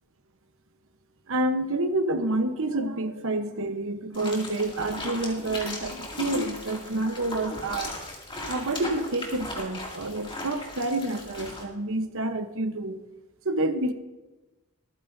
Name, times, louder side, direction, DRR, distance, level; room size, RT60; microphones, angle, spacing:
voice 1, 1.3-8.0 8.5-13.0 13.4-13.9, right 2 dB, 65° right, 8 dB, 1.0 m, -28 dB
sound 1, 4.1-11.6, left 2 dB, 25° left, 2.5 m, -37 dB
24.5 x 9.4 x 2.7 m, 1.1 s
head